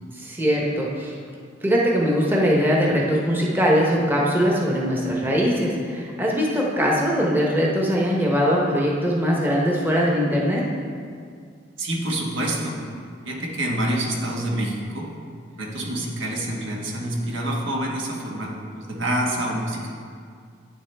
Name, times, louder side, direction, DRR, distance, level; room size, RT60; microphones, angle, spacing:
voice 1, 0.1-1.1 1.6-10.7, equal, 10° right, -3 dB, 0.9 m, -21 dB
voice 2, 11.8-12.8 13.2-15.1 15.6-20.0, right 1 dB, 80° right, -1 dB, 1.4 m, -27 dB
9.2 x 7.2 x 3.4 m, 2.2 s
head